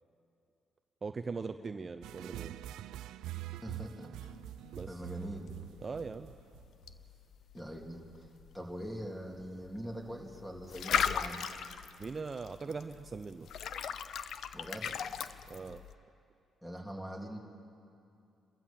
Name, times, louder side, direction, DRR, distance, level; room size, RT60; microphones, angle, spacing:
voice 1, 1.0-2.6 4.7-5.0 5.8-6.3 12.0-13.5 15.5-15.8, right 4 dB, 35° right, 8 dB, 0.6 m, -40 dB
sound 1, 2.0-7.0, right 14 dB, 90° right, 0.5 m, -45 dB
voice 2, 3.6-4.1 4.9-5.5 7.5-8.0 8.5-11.4 14.5-15.0 16.6-17.4, equal, 5° left, 0 dB, 3.3 m, -42 dB
sound 2, 4.2-15.9, left 7 dB, 65° left, 0.7 m, -39 dB
27.5 x 14.0 x 7.6 m, 2.5 s
cardioid pair, 90°, 0 cm